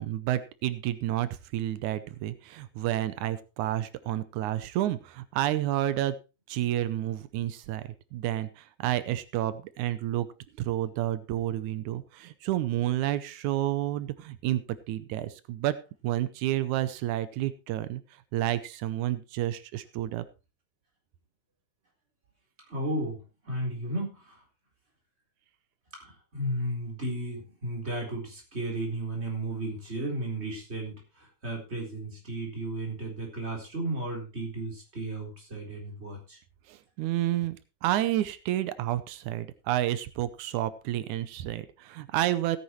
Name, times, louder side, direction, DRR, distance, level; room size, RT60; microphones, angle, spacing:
voice 1, 0.0-6.2 6.5-7.8 8.1-10.3 10.6-14.6 14.9-15.7 16.0-18.0 18.3-20.2 36.7-42.6, right 13 dB, 90° right, 13 dB, 2.2 m, -30 dB
voice 2, 22.7-23.2 23.4-24.4 26.0-36.4, right 1 dB, 20° right, 0 dB, 4.1 m, -34 dB
16.5 x 9.9 x 3.1 m, 0.30 s
omnidirectional pair, 3.3 m